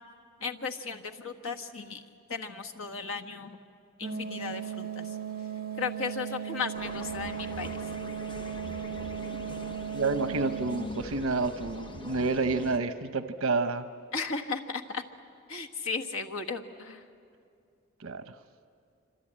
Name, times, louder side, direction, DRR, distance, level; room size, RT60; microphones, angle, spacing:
voice 1, 0.4-2.0 2.3-3.6 4.0-5.2 5.8-7.8 14.1-15.0 15.5-17.0, left 5 dB, 80° left, 3 dB, 1.5 m, -35 dB
sound 1, 4.0-10.8, right 7 dB, 45° right, 1.9 m, -37 dB
sound 2, 6.7-12.8, left 1 dB, 25° left, 1.0 m, -43 dB
voice 2, 9.9-13.9 18.0-18.3, right 3 dB, 80° right, 9 dB, 0.9 m, -29 dB
26.5 x 25.5 x 8.8 m, 2.4 s
head